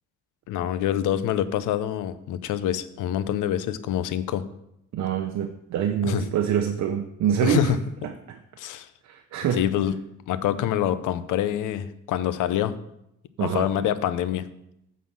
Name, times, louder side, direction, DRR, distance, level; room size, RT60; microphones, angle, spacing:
voice 1, 0.5-4.4 6.0-6.2 7.4-7.8 8.6-8.9 9.5-9.9 10.3-12.8 13.4-14.5, left 11 dB, 85° left, 14 dB, 0.7 m, -26 dB
voice 2, 4.9-7.7 8.0-8.4 9.0-9.6 13.4-13.7, right 8 dB, 65° right, 6 dB, 0.8 m, -25 dB
9.3 x 4.2 x 7.3 m, 0.80 s
cardioid pair, 90°, 30 cm